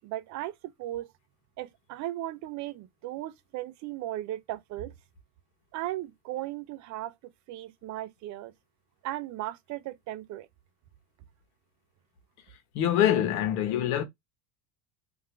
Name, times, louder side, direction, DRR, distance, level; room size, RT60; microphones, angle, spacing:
voice 1, 0.0-1.1 1.6-4.9 5.7-8.5 9.0-10.5, right 14 dB, 45° right, 0.5 m, -37 dB
voice 2, 12.7-14.0, left 11 dB, 80° left, 1.4 m, -24 dB
3.8 x 2.6 x 4.4 m
supercardioid pair, 130°, 44 cm